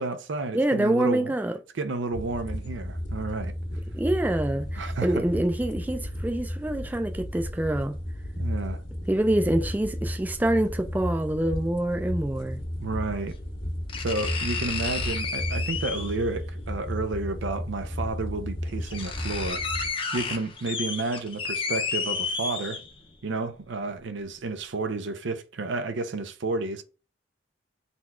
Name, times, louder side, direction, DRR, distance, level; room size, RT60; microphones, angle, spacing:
voice 1, 0.0-1.3 1.7-3.5 4.8-5.3 8.4-8.8 12.8-13.4 14.0-19.6 20.1-22.8 23.2-26.8, right 3 dB, 90° right, 0.5 m, -31 dB
voice 2, 0.5-1.5 3.9-7.9 9.1-12.6, right 1 dB, 10° right, 0.3 m, -26 dB
sound 1, 2.1-19.9, equal, 85° left, 1.4 m, -33 dB
sound 2, 11.5-11.6 13.0-13.1 13.9-16.3 17.6-17.7 18.4-18.5 18.7-23.1 23.6-23.7, left 4 dB, 30° left, 0.6 m, -32 dB
4.2 x 2.3 x 4.2 m
head